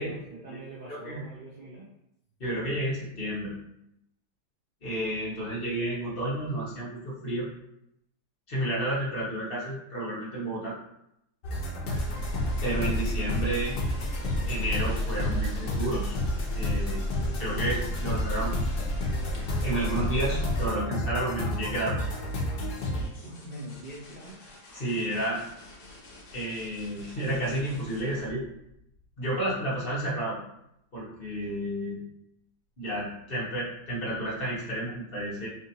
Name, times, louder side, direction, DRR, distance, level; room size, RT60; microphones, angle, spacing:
voice 1, 0.0-1.9 12.8-13.1 23.2-24.4 27.0-27.2, right 1 dB, 85° right, -6 dB, 0.4 m, -44 dB
voice 2, 0.8-1.2 2.4-3.5 4.8-7.5 8.5-10.7 12.6-13.7 14.4-16.2 16.5-17.1 17.4-18.5 19.6-22.1 24.7-25.4 26.3-28.4 29.2-30.4 30.9-32.0 32.8-35.5, right 1 dB, 35° left, -7 dB, 1.2 m, -31 dB
sound 1, 11.4-23.0, left 1 dB, 90° left, 1.4 m, -32 dB
sound 2, 11.9-20.7, left 1 dB, 55° left, 0.4 m, -32 dB
sound 3, 22.0-29.5 31.3-31.8, left 2 dB, 70° left, 1.3 m, -50 dB
3.4 x 2.8 x 2.8 m, 0.80 s
omnidirectional pair, 1.7 m